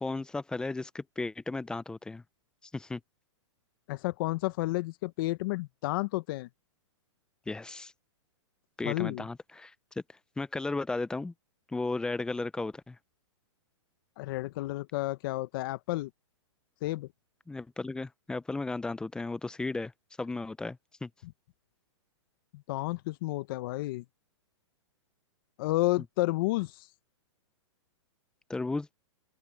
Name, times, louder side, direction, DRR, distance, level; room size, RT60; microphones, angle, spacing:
voice 1, 0.0-2.2 2.7-3.0 7.5-7.9 8.8-9.7 10.4-11.3 11.7-13.0 17.5-19.9 20.2-21.1 28.5-28.9, left 3 dB, 5° left, 0.6 m, -34 dB
voice 2, 3.9-6.5 8.8-9.2 14.2-16.1 16.8-17.1 21.2-21.3 22.7-24.0 25.6-26.9, left 19 dB, 45° left, 0.9 m, -31 dB
open air
hypercardioid pair, 145°, 16 cm